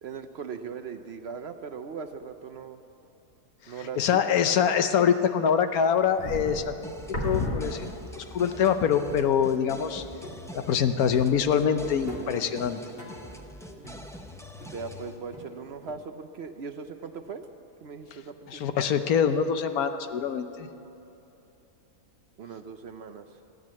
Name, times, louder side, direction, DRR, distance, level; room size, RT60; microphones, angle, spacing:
voice 1, 0.0-2.8 3.7-4.0 4.3-4.6 14.7-17.5 17.8-18.9 22.4-23.4, right 5 dB, 60° right, 7 dB, 0.7 m, -39 dB
voice 2, 4.0-6.9 7.2-10.0 10.5-12.8 18.5-20.7, left 7 dB, 85° left, 9 dB, 1.3 m, -24 dB
sound 1, 5.7-8.2 8.6-8.7 9.1-9.6 10.2-10.9 11.2-15.0 15.3-15.9, left 2 dB, 40° left, 2.1 m, -37 dB
sound 2, 6.8-15.2, left 1 dB, 5° left, 0.5 m, -44 dB
14.5 x 10.5 x 8.4 m, 2.9 s
omnidirectional pair, 1.5 m